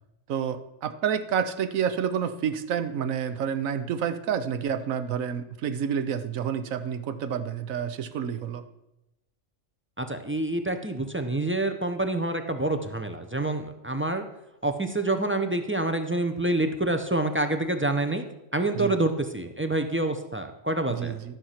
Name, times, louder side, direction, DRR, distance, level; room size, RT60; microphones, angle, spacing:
voice 1, 0.3-8.6 18.7-19.0 20.9-21.4, right 8 dB, 80° right, 11 dB, 1.1 m, -29 dB
voice 2, 10.0-14.3 14.6-18.2 18.5-21.2, right 2 dB, 15° right, 7 dB, 0.4 m, -27 dB
12.5 x 6.4 x 5.8 m, 0.90 s
omnidirectional pair, 1.4 m